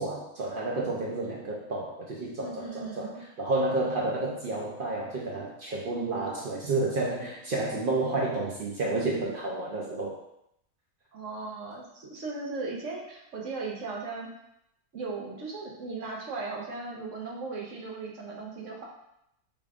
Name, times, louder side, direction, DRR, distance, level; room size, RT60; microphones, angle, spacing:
voice 1, 0.0-10.2, right 2 dB, 90° right, -3 dB, 0.4 m, -30 dB
voice 2, 2.4-3.2 11.1-14.3 14.9-18.8, right 3 dB, 60° right, -2 dB, 1.1 m, -37 dB
4.9 x 3.4 x 2.4 m, 0.79 s
omnidirectional pair, 1.7 m